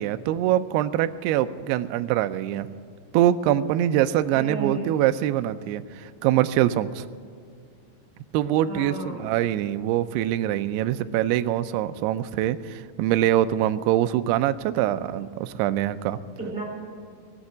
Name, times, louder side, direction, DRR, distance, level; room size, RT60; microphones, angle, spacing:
voice 1, 0.0-2.7 3.1-7.1 8.3-16.2, right 12 dB, 90° right, 10 dB, 2.3 m, -24 dB
voice 2, 4.3-4.9 8.7-9.3 16.4-16.6, right 2 dB, 15° right, -2 dB, 3.5 m, -33 dB
16.0 x 7.6 x 8.1 m, 2.3 s
omnidirectional pair, 5.3 m